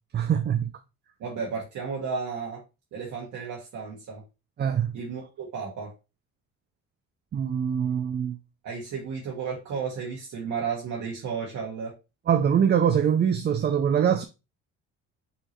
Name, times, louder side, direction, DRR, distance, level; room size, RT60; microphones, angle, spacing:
voice 1, 0.1-0.7 4.6-5.0 7.3-8.4 12.3-14.2, right 8 dB, 35° right, 0.5 m, -23 dB
voice 2, 1.2-2.6 2.9-4.2 4.9-5.9 8.6-11.9, right 5 dB, 65° right, 1.5 m, -33 dB
5.6 x 2.8 x 3.1 m
cardioid pair, 100°, 31 cm